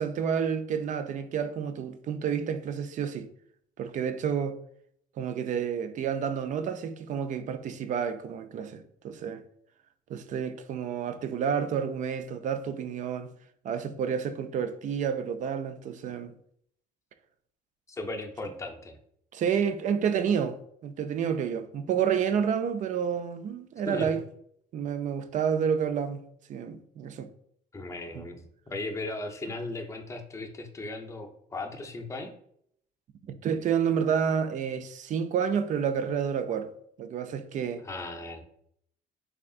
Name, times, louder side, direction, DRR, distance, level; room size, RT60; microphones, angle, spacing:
voice 1, 0.0-3.3 3.8-4.6 5.2-9.4 10.1-13.3 13.6-16.3 19.3-24.2 24.7-26.2 26.5-27.3 28.1-28.3 33.2-36.7 37.0-37.8, right 7 dB, 50° right, 0.4 m, -29 dB
voice 2, 17.9-19.0 23.9-24.2 27.7-32.3 37.8-38.4, left 2 dB, 20° left, 0.5 m, -37 dB
3.6 x 3.4 x 2.4 m
cardioid pair, 110°, 17 cm